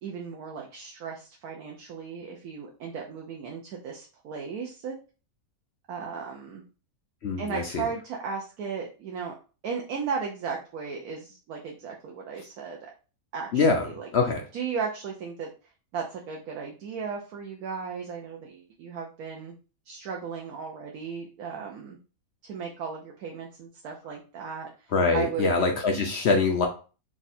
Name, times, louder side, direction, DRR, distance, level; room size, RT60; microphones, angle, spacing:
voice 1, 0.0-4.9 5.9-6.6 7.4-9.3 9.6-12.9 13.3-14.1 14.5-19.5 19.8-22.0 22.4-25.6, right 6 dB, 80° right, 0 dB, 1.2 m, -36 dB
voice 2, 7.2-7.8 13.5-13.9 14.1-14.4 24.9-26.7, left 4 dB, 60° left, 2 dB, 0.7 m, -24 dB
3.6 x 2.4 x 4.1 m, 0.36 s
omnidirectional pair, 1.5 m